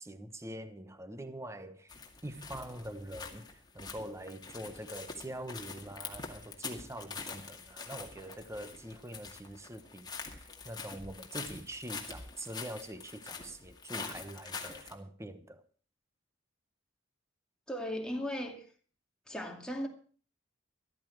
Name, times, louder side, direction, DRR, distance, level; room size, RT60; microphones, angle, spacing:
voice 1, 0.0-15.6, right 1 dB, 15° right, 1.1 m, -44 dB
sound 1, 1.9-14.9, left 4 dB, 20° left, 2.2 m, -45 dB
voice 2, 17.7-18.7 19.3-19.9, equal, 5° left, 2.3 m, -36 dB
14.0 x 13.5 x 4.6 m
head